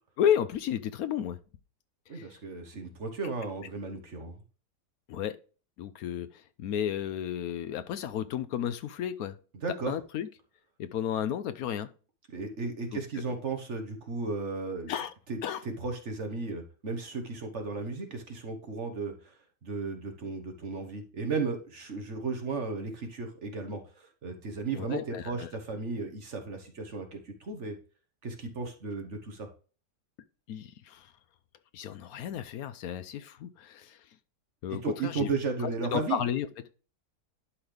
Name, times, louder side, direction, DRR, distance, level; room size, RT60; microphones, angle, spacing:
voice 1, 0.2-1.4 2.1-2.3 5.1-5.4 5.8-9.4 9.9-10.3 10.8-11.9 14.9-15.1 15.4-15.6 24.7-25.5 30.5-31.1 31.7-34.0 34.6-35.3 35.9-36.5, left 9 dB, 70° left, 1.0 m, -32 dB
voice 2, 2.1-4.4 9.5-9.9 12.3-14.9 15.3-19.3 19.6-27.8 28.2-29.5 34.7-36.2, right 4 dB, 50° right, 1.4 m, -35 dB
11.5 x 4.0 x 3.3 m
omnidirectional pair, 1.8 m